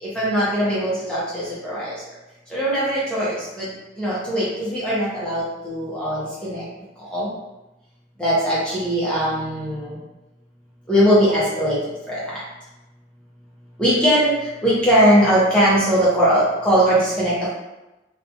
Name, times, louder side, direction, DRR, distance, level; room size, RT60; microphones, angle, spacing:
voice 1, 0.0-1.9 2.5-3.7 4.0-6.6 7.1-7.3 8.2-10.0 10.9-11.8 12.1-12.2 13.8-14.3 14.6-17.5, equal, 5° left, -9 dB, 0.7 m, -20 dB
2.6 x 2.3 x 2.7 m, 1.0 s
head